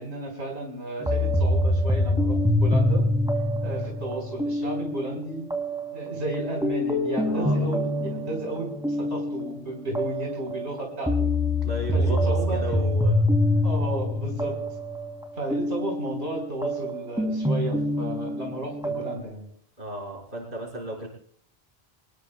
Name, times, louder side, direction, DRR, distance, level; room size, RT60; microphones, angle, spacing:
voice 1, 0.0-3.0 3.6-5.5 5.9-11.3 11.9-12.9 13.6-14.5 15.4-19.5, right 1 dB, 90° right, 0 dB, 4.1 m, -33 dB
sound 1, 1.0-19.2, left 1 dB, 5° right, 2.2 m, -26 dB
voice 2, 7.2-7.6 11.6-13.2 14.4-14.6 19.8-21.1, equal, 55° right, -2 dB, 5.2 m, -34 dB
25.5 x 20.0 x 2.2 m, 0.63 s
omnidirectional pair, 1.1 m